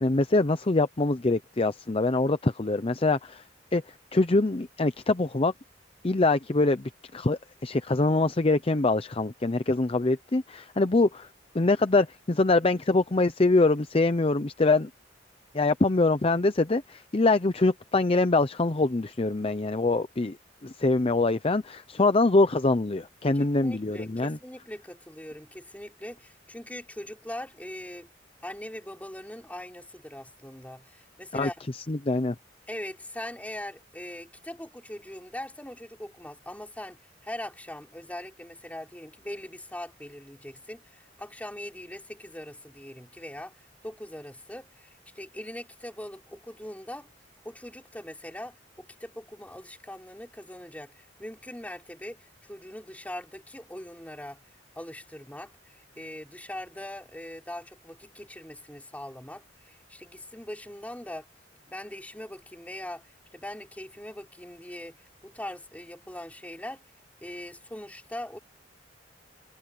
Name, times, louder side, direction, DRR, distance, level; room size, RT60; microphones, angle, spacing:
voice 1, 0.0-3.4 3.7-3.8 4.1-5.5 6.0-11.3 11.5-14.9 15.5-20.4 20.6-24.4 31.3-31.5 31.9-32.3, left 2 dB, 30° left, 0.7 m, -24 dB
voice 2, 23.3-28.1 28.4-31.6 32.7-47.1 47.4-54.4 54.7-61.3 61.7-66.8 67.2-68.4, left 1 dB, 10° left, 5.9 m, -41 dB
head